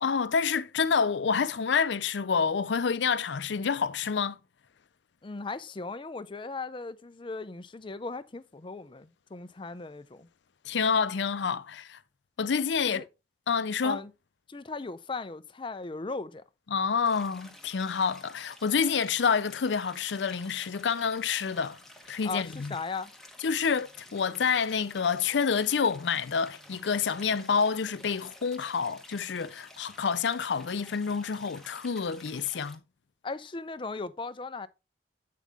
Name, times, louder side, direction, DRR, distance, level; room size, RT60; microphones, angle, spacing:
voice 1, 0.0-4.4 10.7-12.0 12.4-13.0 13.5-14.0 16.7-21.8 22.1-22.8 23.4-32.8, left 6 dB, 85° left, 0.5 m, -28 dB
voice 2, 5.2-10.3 12.9-13.1 13.8-14.1 14.5-16.4 22.2-23.1 33.2-34.7, left 3 dB, 30° left, 0.5 m, -37 dB
Stream, 17.0-32.8, left 1 dB, ahead, 1.3 m, -52 dB
8.4 x 5.6 x 3.5 m
head